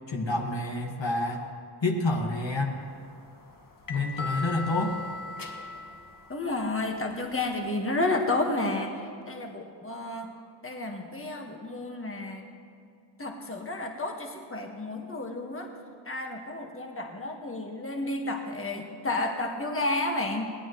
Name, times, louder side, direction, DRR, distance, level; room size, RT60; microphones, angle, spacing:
voice 1, 0.1-1.4 1.8-2.7 3.9-5.0, left 2 dB, 65° left, 1 dB, 1.7 m, -28 dB
sound 1, 2.8-7.6, left 3 dB, 45° left, 1.4 m, -40 dB
voice 2, 6.3-8.9 9.2-10.3 10.6-12.4 13.2-15.7 16.0-20.5, left 2 dB, 25° left, 2 dB, 1.5 m, -31 dB
22.0 x 17.0 x 3.1 m, 2.3 s
wide cardioid pair, 55°, 48 cm